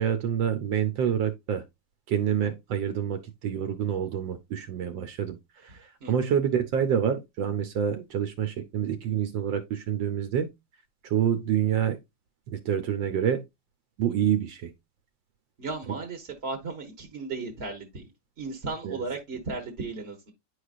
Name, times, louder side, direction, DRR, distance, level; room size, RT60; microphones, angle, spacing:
voice 1, 0.0-1.6 2.1-5.4 5.6-10.5 11.0-12.0 12.5-13.4 14.0-14.7 18.8-19.0, right 8 dB, 70° right, 1.4 m, -27 dB
voice 2, 6.0-6.3 15.6-18.1 18.4-20.3, right 3 dB, 35° right, 1.2 m, -35 dB
9.7 x 4.9 x 2.4 m
omnidirectional pair, 2.2 m